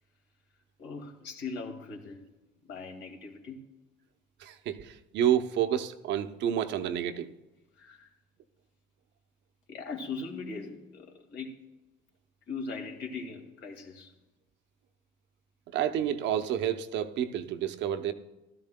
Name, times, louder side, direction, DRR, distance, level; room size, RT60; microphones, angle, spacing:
voice 1, 0.8-2.3 2.6-3.7 7.7-8.1 9.7-11.7 12.5-14.1, left 4 dB, 75° left, 2.2 m, -40 dB
voice 2, 4.4-7.3 15.7-18.1, right 10 dB, 70° right, 0.8 m, -29 dB
16.0 x 13.0 x 2.2 m
cardioid pair, 125°, 19 cm